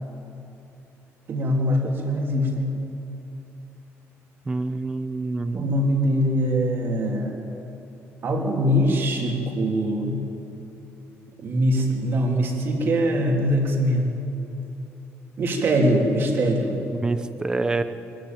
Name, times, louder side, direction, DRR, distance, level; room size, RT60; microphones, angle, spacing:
voice 1, 1.3-2.7 5.5-7.4 8.2-10.2 11.4-14.1 15.4-16.8, equal, 45° right, 1 dB, 3.3 m, -22 dB
voice 2, 4.5-5.8 16.9-17.8, right 3 dB, 15° right, 11 dB, 0.8 m, -27 dB
23.0 x 14.0 x 8.9 m, 2.9 s
cardioid pair, 160°, 5 cm